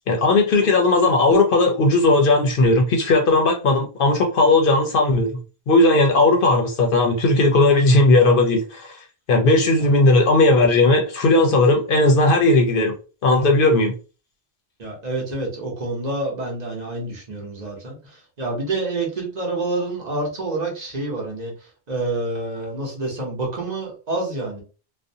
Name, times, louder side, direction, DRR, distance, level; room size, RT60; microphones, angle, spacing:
voice 1, 0.1-5.4 5.7-9.0 9.3-12.9 13.2-13.9, left 2 dB, 65° left, 0.7 m, -17 dB
voice 2, 14.8-24.6, right 2 dB, 45° right, 0.9 m, -28 dB
2.5 x 2.1 x 2.6 m
omnidirectional pair, 1.1 m